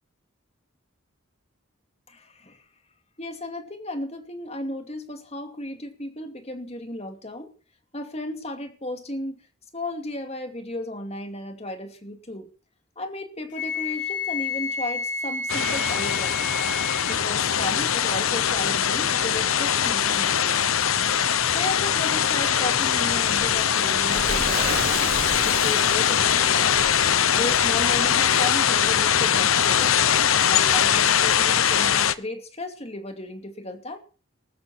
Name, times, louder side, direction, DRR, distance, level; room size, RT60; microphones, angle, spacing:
voice 1, 2.1-2.6 3.2-7.5 7.9-9.4 9.7-12.5 13.0-16.5 17.1-20.6 21.5-24.9 25.4-26.8 27.3-30.1 30.4-34.0, left 1 dB, 30° left, 6 dB, 2.5 m, -34 dB
Wind instrument woodwind instrument, 13.5-17.2, left 4 dB, 55° left, 4.1 m, -30 dB
sound 1, 15.5-32.1, left 9 dB, 80° left, 0.9 m, -22 dB
Waves surf, 23.2-28.4, right 3 dB, 45° right, 3.7 m, -35 dB
20.5 x 13.0 x 4.4 m, 0.37 s
head